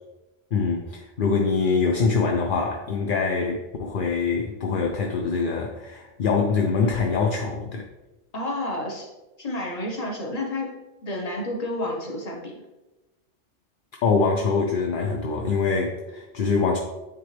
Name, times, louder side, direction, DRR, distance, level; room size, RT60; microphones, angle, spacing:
voice 1, 0.5-7.9 14.0-16.8, left 4 dB, 55° left, 1 dB, 0.7 m, -24 dB
voice 2, 8.3-9.1 9.4-12.5, left 1 dB, 35° left, 0 dB, 1.1 m, -30 dB
9.5 x 3.7 x 3.3 m, 1.1 s
omnidirectional pair, 1.3 m